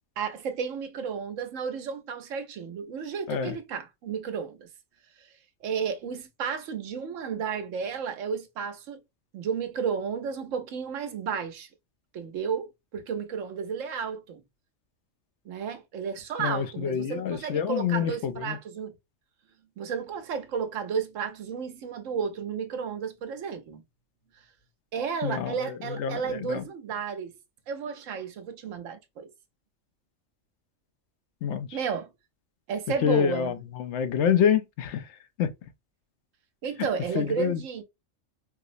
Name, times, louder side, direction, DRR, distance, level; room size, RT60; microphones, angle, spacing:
voice 1, 0.2-4.7 5.6-9.0 9.3-11.7 12.1-14.4 15.5-18.9 19.8-23.8 24.9-27.3 27.7-29.3 31.7-32.1 32.7-33.5 36.6-37.8, right 6 dB, 80° right, 1.1 m, -32 dB
voice 2, 16.4-18.6 25.2-26.6 31.4-31.8 33.0-35.1 35.4-35.5 36.8-36.9 37.2-37.6, left 8 dB, 70° left, 0.8 m, -27 dB
4.7 x 2.0 x 2.5 m
omnidirectional pair, 1.3 m